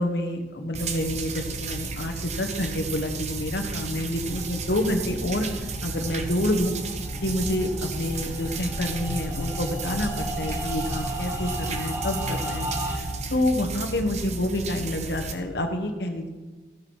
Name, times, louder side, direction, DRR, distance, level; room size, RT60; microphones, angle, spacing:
voice 1, 0.0-6.8 7.2-16.3, left 1 dB, 70° left, 4 dB, 1.2 m, -28 dB
sound 1, 0.7-15.3, right 4 dB, 40° right, 0.9 m, -33 dB
sound 2, 4.1-13.0, equal, 15° right, 1.4 m, -34 dB
15.0 x 6.7 x 4.7 m, 1.3 s
head